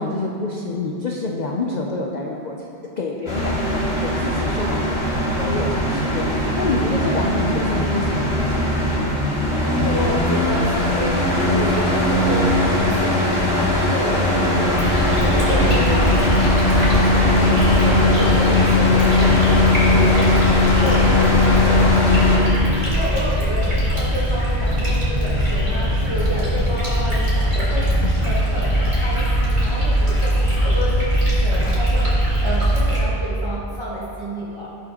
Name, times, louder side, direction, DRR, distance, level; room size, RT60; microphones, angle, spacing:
voice 1, 0.0-8.7 28.0-28.2, left 3 dB, 50° left, -1 dB, 0.7 m, -27 dB
sound 1, 3.3-22.4, left 2 dB, 65° left, 2.3 m, -19 dB
voice 2, 5.8-6.2 9.5-34.7, equal, 25° right, -9 dB, 1.4 m, -29 dB
sound 2, 14.7-33.0, equal, 45° right, 2.5 m, -21 dB
17.5 x 6.3 x 2.9 m, 2.8 s
omnidirectional pair, 1.1 m